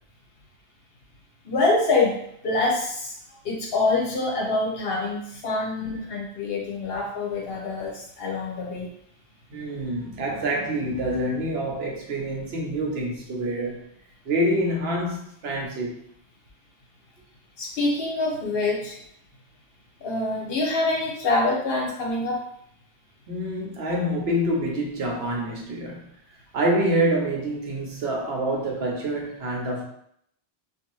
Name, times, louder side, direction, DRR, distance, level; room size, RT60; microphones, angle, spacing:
voice 1, 1.4-3.1 3.4-8.9 17.6-18.9 20.0-22.4, left 3 dB, 65° left, -2 dB, 1.0 m, -25 dB
voice 2, 9.5-13.8 14.2-15.9 23.3-26.1 26.5-29.8, right 1 dB, 70° right, -1 dB, 0.9 m, -26 dB
2.6 x 2.4 x 3.0 m, 0.70 s
omnidirectional pair, 1.1 m